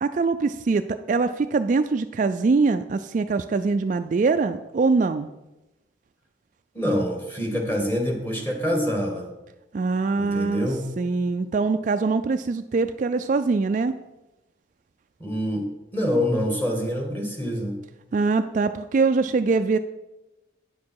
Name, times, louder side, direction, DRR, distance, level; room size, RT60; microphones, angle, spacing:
voice 1, 0.0-5.3 9.7-10.7 11.0-13.9 18.1-19.8, right 4 dB, 40° right, 9 dB, 0.3 m, -23 dB
voice 2, 6.7-9.3 10.2-10.9 15.2-17.8, equal, 10° left, 0 dB, 2.0 m, -26 dB
9.3 x 7.3 x 4.7 m, 0.98 s
head